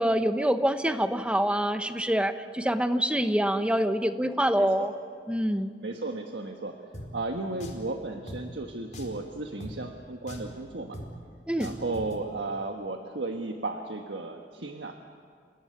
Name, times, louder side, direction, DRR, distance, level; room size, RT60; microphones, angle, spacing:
voice 1, 0.0-4.9 5.3-5.7 11.5-11.7, equal, 5° right, 9 dB, 1.0 m, -26 dB
voice 2, 4.6-4.9 5.8-6.8 7.1-11.0 11.6-15.0, right 2 dB, 80° right, 4 dB, 1.5 m, -34 dB
Drum, 6.9-7.1 7.6-7.9 8.3-8.4 8.9-9.2 9.6-9.7 10.3-10.5 10.9-11.1 11.6-12.1, equal, 45° left, 4.4 m, -40 dB
28.5 x 18.0 x 9.6 m, 2.1 s
head